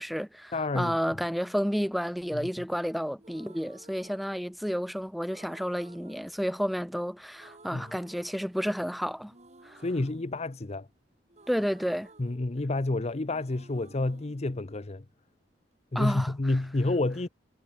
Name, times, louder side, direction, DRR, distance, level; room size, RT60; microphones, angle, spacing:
voice 1, 0.0-9.3 9.6-9.8 11.5-12.1 15.9-16.3, equal, ahead, 0.9 m, -31 dB
voice 2, 0.5-1.0 2.3-2.5 7.7-7.9 9.8-10.9 12.2-15.0 15.9-17.3, left 2 dB, 35° left, 0.7 m, -29 dB
sound 1, 3.2-4.9 5.3-7.1 7.3-8.9 9.3-13.0 13.3-15.3, right 2 dB, 40° right, 6.5 m, -56 dB
head